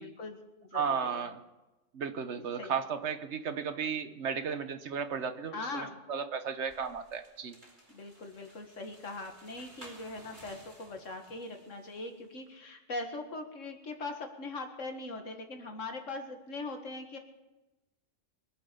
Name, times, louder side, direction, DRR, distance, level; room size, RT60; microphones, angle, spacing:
voice 1, 0.0-1.3 2.4-2.7 5.5-6.0 7.9-17.2, left 3 dB, 80° left, 4 dB, 2.1 m, -41 dB
voice 2, 0.7-1.4 1.9-7.6, right 6 dB, 65° right, 10 dB, 1.2 m, -34 dB
sound 1, 6.6-12.2, right 1 dB, 35° right, 3.4 m, -56 dB
23.0 x 7.8 x 6.8 m, 1.0 s
omnidirectional pair, 1.3 m